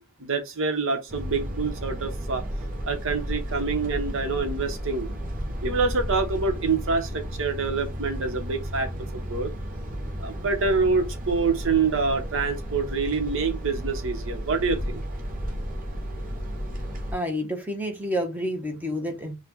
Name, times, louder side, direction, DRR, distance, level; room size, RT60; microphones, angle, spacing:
voice 1, 0.0-2.4 2.8-5.1 5.6-9.5 10.2-15.0, right 4 dB, 65° right, 1.1 m, -26 dB
sound 1, 1.1-17.1, equal, 40° right, 0.9 m, -33 dB
voice 2, 17.1-19.4, equal, 10° right, 1.1 m, -29 dB
5.7 x 2.4 x 3.0 m
head